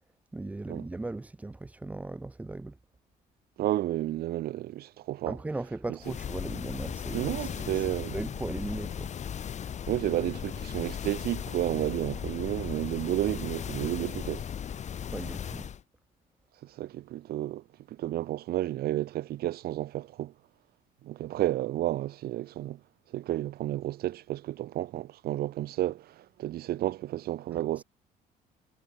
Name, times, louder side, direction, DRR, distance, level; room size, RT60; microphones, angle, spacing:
voice 1, 0.3-2.8 5.3-7.9 8.1-9.1 15.1-15.7 27.5-27.8, right 2 dB, 10° right, 0.4 m, -38 dB
voice 2, 3.6-5.4 7.1-8.2 9.9-14.4 16.6-17.6 17.9-20.3 21.0-22.8 23.1-27.8, right 14 dB, 65° right, 0.9 m, -31 dB
sound 1, 6.0-15.8, left 8 dB, 45° left, 1.7 m, -37 dB
cardioid pair, 110°, 17 cm